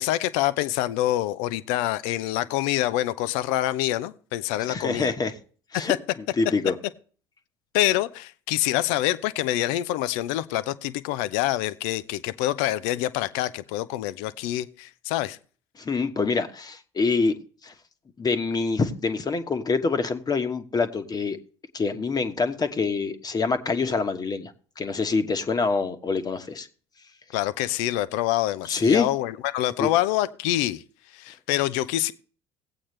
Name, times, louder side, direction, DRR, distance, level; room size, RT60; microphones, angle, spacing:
voice 1, 0.0-5.1 5.7-6.0 7.7-15.4 27.3-30.8 31.1-32.1, left 15 dB, 65° left, 0.6 m, -26 dB
voice 2, 4.6-5.3 5.7-5.9 6.4-6.7 15.8-17.3 17.6-17.7 18.2-21.4 21.7-26.7 28.6-29.1 29.8-29.9, left 4 dB, 30° left, 1.2 m, -25 dB
17.0 x 8.6 x 3.2 m
hypercardioid pair, 60°, 14 cm